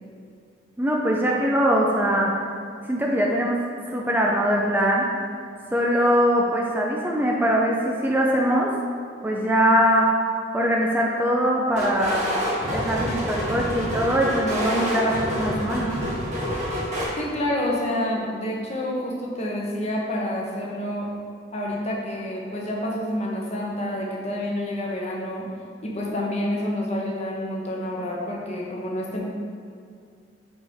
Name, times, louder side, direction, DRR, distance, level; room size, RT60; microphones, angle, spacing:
voice 1, 0.8-2.3 2.9-3.6 3.9-5.0 5.7-8.7 9.2-10.1 10.5-12.3 12.7-16.0, equal, 10° right, -2 dB, 0.5 m, -22 dB
sound 1, 11.7-17.1, equal, 40° right, 1.5 m, -27 dB
voice 2, 17.2-21.1 21.5-25.5 25.8-29.2, left 1 dB, 40° left, -3 dB, 1.0 m, -28 dB
4.9 x 4.8 x 4.1 m, 2.3 s
head